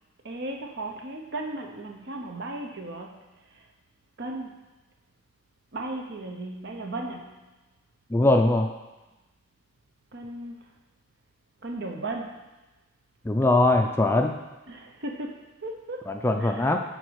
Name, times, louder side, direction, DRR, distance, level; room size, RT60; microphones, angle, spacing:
voice 1, 0.2-3.7 4.2-4.7 5.7-7.4 10.1-10.6 11.6-12.3 14.7-16.1 16.4-16.7, right 2 dB, 60° right, 3 dB, 0.9 m, -36 dB
voice 2, 8.1-8.7 13.2-14.3 16.1-16.8, left 2 dB, 10° left, 4 dB, 0.4 m, -21 dB
9.1 x 4.1 x 4.7 m, 1.1 s
head